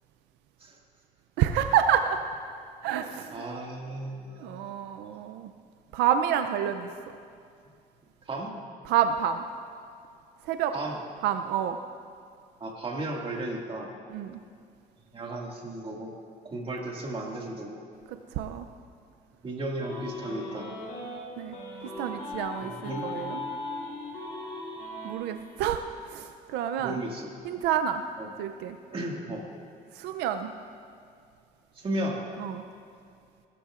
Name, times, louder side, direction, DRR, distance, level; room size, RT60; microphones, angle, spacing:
voice 1, 1.4-2.2 2.8-3.4 4.4-5.5 5.9-6.9 8.9-9.5 10.5-10.7 11.2-11.8 14.1-14.4 18.1-18.6 21.4-21.6 22.0-23.4 25.0-27.0 27.4-28.0 28.4-28.8 29.9-30.5 32.4-32.6, right 9 dB, 90° right, 8 dB, 0.5 m, -28 dB
voice 2, 3.3-4.9 8.3-8.5 10.7-11.0 12.6-13.9 15.1-16.1 16.4-17.8 19.4-20.7 22.6-23.1 26.8-27.3 28.2-28.3 28.9-29.4 31.8-32.2, right 1 dB, 35° right, -1 dB, 2.1 m, -34 dB
sound 1, 19.8-21.2 21.5-25.1, left 2 dB, 65° left, 3.2 m, -38 dB
17.5 x 13.0 x 2.5 m, 2.4 s
cardioid pair, 110°, 17 cm